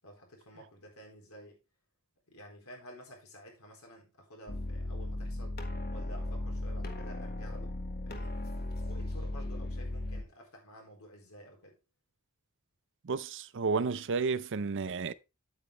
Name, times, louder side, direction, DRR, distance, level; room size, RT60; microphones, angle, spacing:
voice 1, 0.0-1.6 2.3-5.6 5.9-8.4 8.8-11.8, equal, 75° left, 4.1 m, -52 dB
sound 1, 4.5-10.2, left 1 dB, 45° left, 1.5 m, -36 dB
voice 2, 13.0-15.1, right 4 dB, 60° right, 0.6 m, -31 dB
9.0 x 8.6 x 3.3 m
head